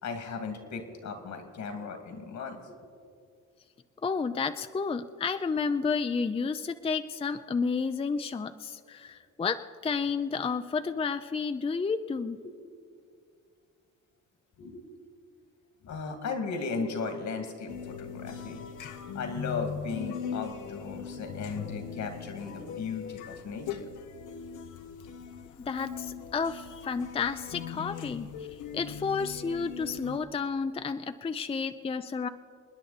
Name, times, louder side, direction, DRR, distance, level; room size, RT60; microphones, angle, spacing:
voice 1, 0.0-2.7 14.6-14.8 15.8-18.6 19.1-23.9, left 4 dB, 70° left, 5 dB, 2.3 m, -36 dB
voice 2, 4.0-12.4 25.6-32.3, left 5 dB, 20° left, 9 dB, 0.5 m, -31 dB
sound 1, 17.7-30.2, left 7 dB, 85° left, 1.0 m, -40 dB
28.0 x 9.8 x 4.2 m, 2.3 s
cardioid pair, 90°, 30 cm